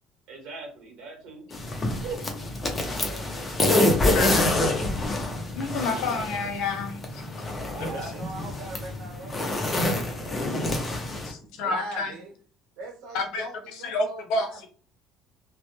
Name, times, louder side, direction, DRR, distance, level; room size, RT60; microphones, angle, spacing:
voice 1, 0.3-1.5 1.8-2.7 3.0-3.2 4.5-4.8 7.7-8.2, right 4 dB, 60° right, 1 dB, 1.1 m, -41 dB
sound 1, 1.5-11.3, left 1 dB, 15° left, 0.5 m, -27 dB
voice 2, 4.1-4.7 5.5-7.2 7.8-7.9 8.2-8.3 11.2-12.1 13.1-13.4 13.8-14.7, left 3 dB, 65° left, 5 dB, 0.6 m, -29 dB
voice 3, 7.8-11.2 11.5-12.3 12.8-14.7, right 2 dB, 80° right, 2 dB, 0.8 m, -41 dB
2.1 x 2.0 x 2.9 m, 0.43 s
cardioid pair, 165°, 0 cm